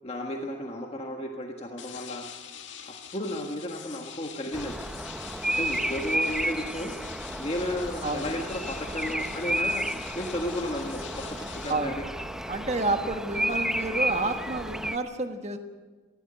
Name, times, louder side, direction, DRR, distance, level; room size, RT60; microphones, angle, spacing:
voice 1, 0.0-2.2 2.8-4.8 5.4-6.9 7.4-12.1, left 1 dB, 30° left, 1 dB, 1.5 m, -34 dB
sound 1, 1.8-11.7, left 9 dB, 70° left, 2.0 m, -44 dB
Bird vocalization bird call bird song, 4.5-15.0, right 1 dB, 5° right, 0.5 m, -32 dB
voice 2, 12.5-15.6, right 2 dB, 35° right, 6 dB, 1.5 m, -29 dB
19.5 x 15.5 x 9.0 m, 1.3 s
head